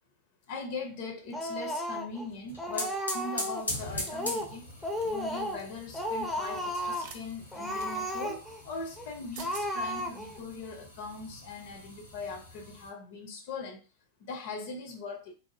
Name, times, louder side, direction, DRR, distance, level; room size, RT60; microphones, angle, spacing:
voice 1, 0.5-4.7 5.0-13.8 14.3-15.3, left 3 dB, 50° left, 0.6 m, -40 dB
Speech, 1.3-2.3 2.6-3.7 4.1-4.6 4.8-5.7 5.9-7.1 7.5-8.6 9.0-9.1 9.4-10.4, equal, 5° left, 0.5 m, -34 dB
sound 1, 2.3-12.9, left 1 dB, 80° left, 0.8 m, -42 dB
sound 2, 5.0-5.2 6.9-7.2 7.8-7.9 9.0-9.1 9.3-9.7, right 5 dB, 50° right, 0.5 m, -46 dB
2.9 x 2.1 x 2.9 m
figure-of-eight pair, 90°, 0 cm